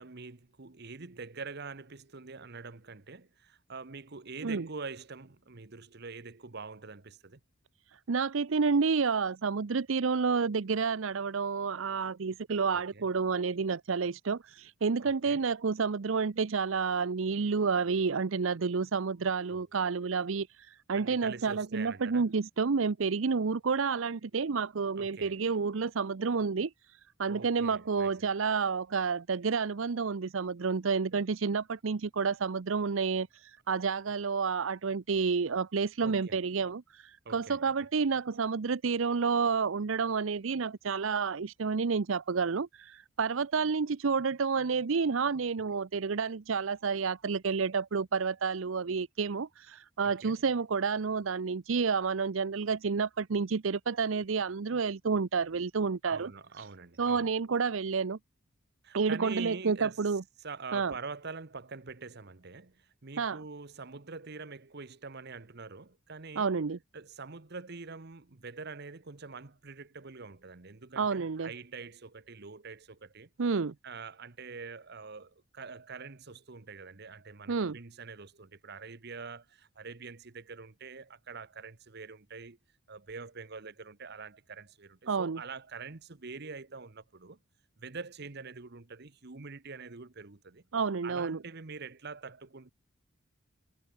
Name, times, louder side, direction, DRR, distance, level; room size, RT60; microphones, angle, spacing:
voice 1, 0.0-7.4 12.7-13.0 15.0-15.4 19.5-19.6 20.9-22.3 25.0-25.4 27.3-28.1 36.0-36.4 37.2-37.7 50.0-50.3 56.1-57.3 58.8-60.0 60.4-66.5 66.9-73.3 73.8-82.6 82.9-87.4 87.8-90.6 91.0-92.7, right 4 dB, 55° right, 1.1 m, -45 dB
voice 2, 7.9-26.7 27.2-56.3 57.0-58.2 58.9-60.2 60.7-60.9 63.2-63.4 66.4-66.8 71.0-71.5 73.4-73.7 77.5-77.8 85.1-85.4 90.7-91.4, right 5 dB, 70° right, 0.6 m, -30 dB
head